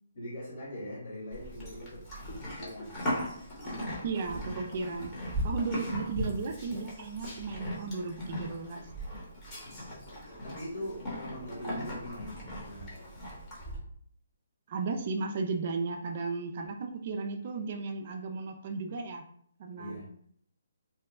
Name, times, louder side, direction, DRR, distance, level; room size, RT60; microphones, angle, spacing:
voice 1, 0.1-2.9 10.0-13.0 19.8-20.1, equal, 45° left, -4 dB, 1.4 m, -42 dB
Livestock farm animals working animals, 1.3-13.8, equal, 20° left, 0.9 m, -38 dB
voice 2, 4.0-5.1 5.4-8.8 14.7-19.2 19.6-20.0, right 4 dB, 40° right, 4 dB, 0.3 m, -35 dB
2.9 x 2.1 x 3.5 m, 0.64 s
hypercardioid pair, 160°, 0 cm